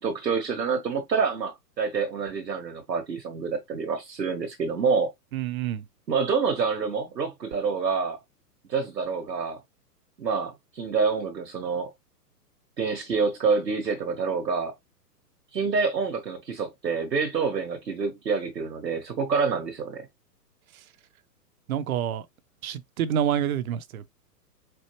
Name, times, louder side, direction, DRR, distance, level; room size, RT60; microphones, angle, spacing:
voice 1, 0.0-5.1 6.1-8.2 8.7-9.6 10.2-11.9 12.8-14.7 15.5-20.1, right 5 dB, 90° right, 1.3 m, -27 dB
voice 2, 5.3-5.9 20.7-20.8 21.7-22.3 22.6-24.1, right 9 dB, 60° right, 0.7 m, -28 dB
4.4 x 2.3 x 3.0 m
hypercardioid pair, 120°, 49 cm